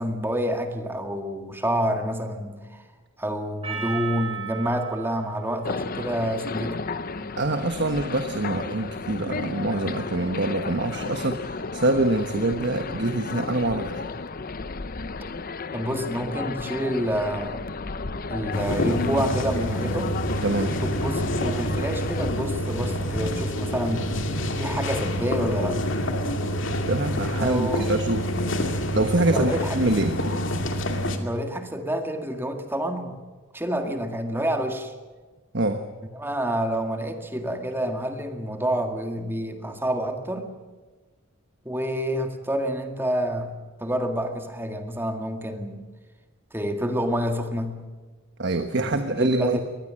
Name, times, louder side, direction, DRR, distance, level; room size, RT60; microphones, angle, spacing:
voice 1, 0.0-2.9 3.2-6.9 15.7-17.6 18.3-20.1 20.8-24.1 24.6-25.8 27.4-27.9 29.3-29.9 31.2-33.2 33.5-34.9 36.1-40.5 41.7-45.8 46.5-47.9 48.7-49.6, equal, 10° right, 5 dB, 1.9 m, -28 dB
Percussion, 3.6-7.9, right 8 dB, 30° right, 4.1 m, -38 dB
sound 1, 5.6-22.3, left 4 dB, 45° left, 0.8 m, -34 dB
voice 2, 7.4-14.0 20.4-20.8 26.9-28.3 28.9-30.2 35.5-35.8 48.4-49.6, right 2 dB, 55° right, 7 dB, 1.2 m, -25 dB
sound 2, 18.5-31.2, equal, 65° left, 2.4 m, -27 dB
23.5 x 19.5 x 7.6 m, 1.3 s
head